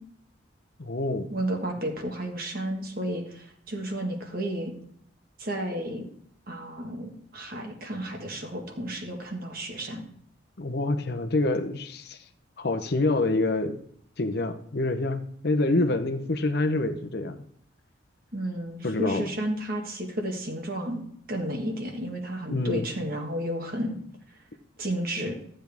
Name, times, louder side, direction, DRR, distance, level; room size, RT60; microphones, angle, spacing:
voice 1, 0.8-1.3 10.6-12.2 12.6-13.8 14.2-17.4 18.8-19.3 22.5-22.9, left 2 dB, 55° left, 7 dB, 0.8 m, -26 dB
voice 2, 1.3-4.7 5.4-6.0 6.5-10.1 18.3-21.0 21.3-24.0 24.8-25.4, right 1 dB, 50° right, 3 dB, 1.7 m, -32 dB
13.5 x 7.6 x 3.5 m, 0.66 s
head